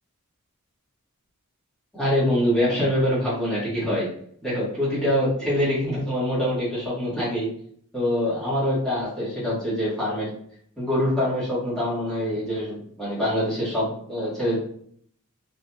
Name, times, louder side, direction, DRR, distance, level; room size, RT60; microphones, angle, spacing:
voice 1, 1.9-4.1 4.4-7.5 7.9-10.3 10.8-14.6, equal, 5° left, -10 dB, 1.2 m, -24 dB
2.7 x 2.5 x 2.2 m, 0.62 s
head